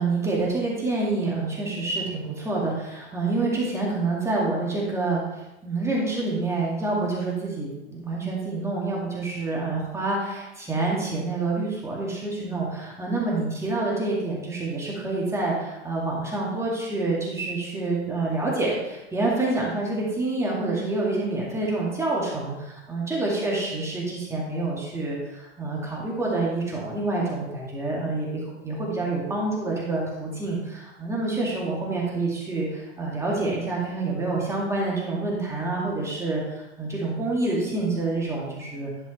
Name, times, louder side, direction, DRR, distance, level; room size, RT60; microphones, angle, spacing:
voice 1, 0.0-5.2 5.6-38.9, right 2 dB, 10° right, -4 dB, 2.1 m, -27 dB
11.0 x 5.5 x 3.2 m, 0.96 s
hypercardioid pair, 130°, 35 cm